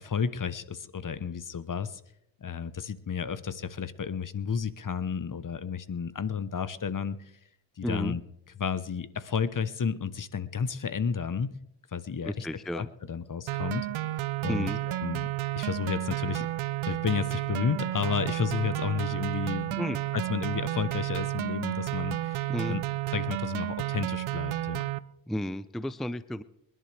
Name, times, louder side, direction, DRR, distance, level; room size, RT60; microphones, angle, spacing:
voice 1, 0.0-2.0 2.4-7.2 7.8-8.2 8.6-11.6 11.9-12.5 12.7-13.9 14.4-15.3 15.5-16.5 16.9-19.8 20.1-22.8 23.1-24.8, left 6 dB, 40° left, 14 dB, 1.1 m, -32 dB
voice 2, 7.8-8.2 12.2-12.9 14.5-14.8 19.8-20.0 22.5-22.8 25.3-26.4, equal, ahead, 14 dB, 0.6 m, -32 dB
sound 1, 13.5-25.0, right 15 dB, 75° right, 0.8 m, -32 dB
27.5 x 11.0 x 3.4 m, 0.78 s
supercardioid pair, 50°, 48 cm